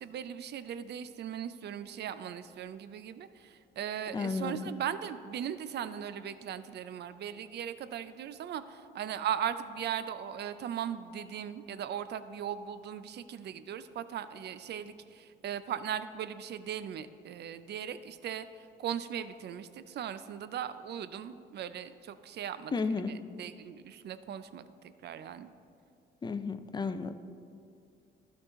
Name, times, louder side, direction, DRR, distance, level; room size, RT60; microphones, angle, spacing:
voice 1, 0.0-22.7 23.1-25.5, right 9 dB, 60° right, 13 dB, 0.4 m, -38 dB
voice 2, 4.1-4.8 22.7-23.2 26.2-27.1, left 4 dB, 20° left, 10 dB, 0.4 m, -33 dB
12.5 x 4.7 x 3.7 m, 2.4 s
cardioid pair, 90°, 20 cm